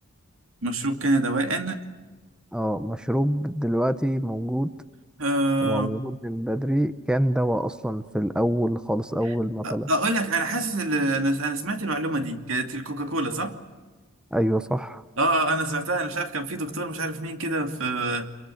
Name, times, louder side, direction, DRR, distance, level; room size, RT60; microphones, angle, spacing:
voice 1, 0.6-1.8 5.2-6.0 9.6-13.6 15.2-18.3, right 2 dB, 70° right, 5 dB, 2.6 m, -26 dB
voice 2, 2.5-4.7 5.6-9.9 14.3-15.0, equal, 5° right, 11 dB, 0.7 m, -25 dB
27.0 x 23.0 x 7.8 m, 1.2 s
head